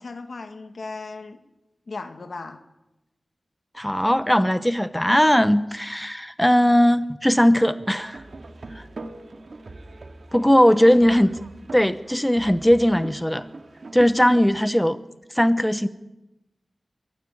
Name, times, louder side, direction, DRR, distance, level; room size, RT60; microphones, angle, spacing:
voice 1, 0.0-1.4 1.9-2.6 10.9-11.0, left 3 dB, 70° left, 8 dB, 1.9 m, -36 dB
voice 2, 3.7-8.2 8.7-8.8 10.3-11.4 11.7-13.4 13.9-15.0 15.3-15.9, equal, 5° left, 13 dB, 0.9 m, -19 dB
sound 1, 8.0-14.5, right 2 dB, 65° right, 2.1 m, -40 dB
23.0 x 15.0 x 8.5 m, 0.99 s
wide cardioid pair, 70°, 0 cm